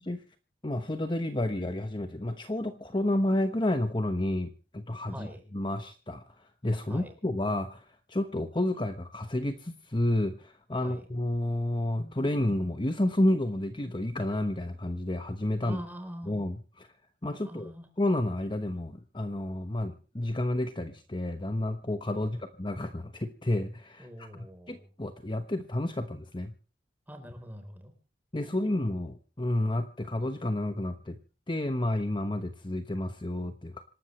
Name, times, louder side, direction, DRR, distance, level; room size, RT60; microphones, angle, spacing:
voice 1, 0.6-5.3 5.5-15.8 16.3-16.9 17.2-17.7 18.0-26.5 28.3-31.2 31.5-33.8, left 1 dB, 25° left, 8 dB, 1.0 m, -30 dB
voice 2, 5.1-5.4 6.9-7.1 10.8-11.0 15.6-16.3 17.4-17.9 22.1-22.4 24.0-24.9 27.1-27.9 28.4-29.1, equal, 10° right, 6 dB, 3.8 m, -44 dB
26.5 x 12.5 x 3.2 m, 0.37 s
head